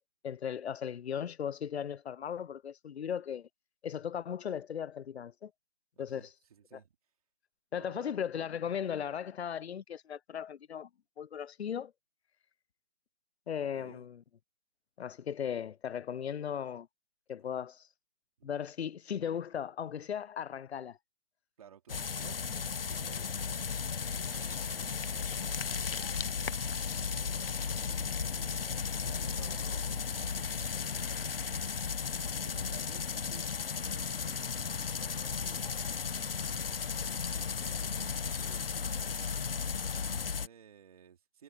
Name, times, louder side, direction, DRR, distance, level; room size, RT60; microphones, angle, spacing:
voice 1, 0.2-3.5 3.8-5.5 6.0-6.2 6.7-6.8 7.7-10.9 11.2-11.9 13.5-14.2 15.0-16.9 17.3-17.9 18.4-21.0 38.4-38.6, left 8 dB, 75° left, 0.6 m, -37 dB
voice 2, 5.9-6.9 7.7-8.1 13.6-14.1 18.4-18.5 21.6-31.8 32.4-33.5 33.7-41.4, right 8 dB, 35° right, 3.3 m, -57 dB
sound 1, 21.9-40.5, left 6 dB, 60° left, 1.3 m, -35 dB
hypercardioid pair, 170°, 33 cm